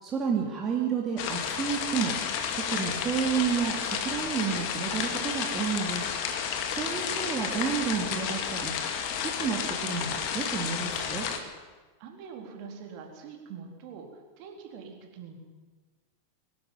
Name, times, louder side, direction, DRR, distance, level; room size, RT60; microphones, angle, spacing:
voice 1, 0.0-2.1 2.5-6.0 6.7-8.7 9.1-11.3, right 6 dB, 25° right, -1 dB, 2.9 m, -31 dB
sound 1, 1.2-11.4, left 7 dB, 45° left, 2.4 m, -31 dB
voice 2, 12.0-15.4, right 6 dB, 45° right, 2 dB, 4.0 m, -44 dB
23.5 x 12.5 x 9.3 m, 1.3 s
figure-of-eight pair, 90°, 0 cm